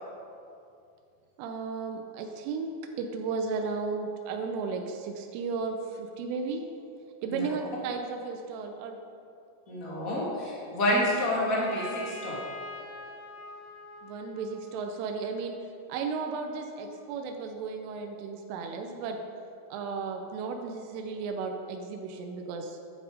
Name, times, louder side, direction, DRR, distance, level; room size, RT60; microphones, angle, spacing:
voice 1, 1.4-2.7 3.0-6.6 7.2-9.0 14.0-15.5 15.9-19.2 19.7-22.8, right 4 dB, 85° right, 3 dB, 3.3 m, -34 dB
voice 2, 9.7-12.4, left 1 dB, 25° left, -6 dB, 1.9 m, -28 dB
Trumpet, 11.6-15.3, left 2 dB, 85° left, 1.7 m, -44 dB
11.0 x 9.6 x 5.2 m, 2.5 s
omnidirectional pair, 5.6 m